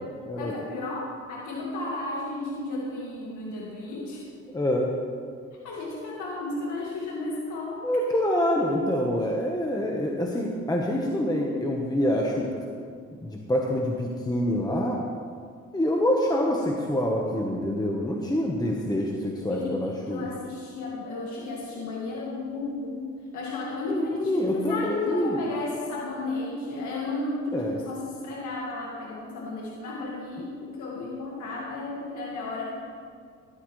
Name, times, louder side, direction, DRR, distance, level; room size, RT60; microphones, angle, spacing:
voice 1, 0.4-4.3 5.5-7.9 19.5-32.7, left 2 dB, 75° left, -4 dB, 1.9 m, -34 dB
voice 2, 4.5-4.9 7.8-12.6 13.2-15.0 15.7-20.2 23.9-25.5 27.5-27.7, left 1 dB, 15° left, -1 dB, 1.2 m, -26 dB
14.0 x 11.5 x 3.2 m, 2.1 s
cardioid pair, 90°, 30 cm